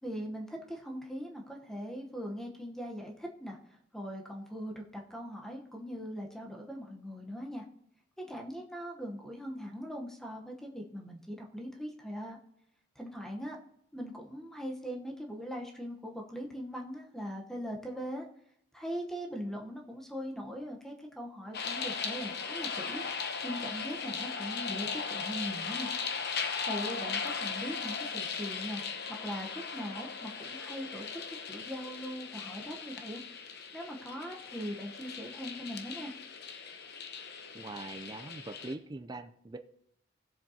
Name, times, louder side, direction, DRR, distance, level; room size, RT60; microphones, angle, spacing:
voice 1, 0.0-3.6 3.9-7.6 8.2-12.4 13.0-13.6 13.9-18.3 18.7-25.9 26.7-28.8 29.1-33.2 33.7-36.1, equal, ahead, 1 dB, 0.9 m, -40 dB
sound 1, 21.5-38.7, left 5 dB, 55° left, 0.9 m, -38 dB
voice 2, 37.5-39.6, right 2 dB, 20° right, 8 dB, 0.4 m, -42 dB
16.5 x 7.4 x 2.8 m, 0.73 s
head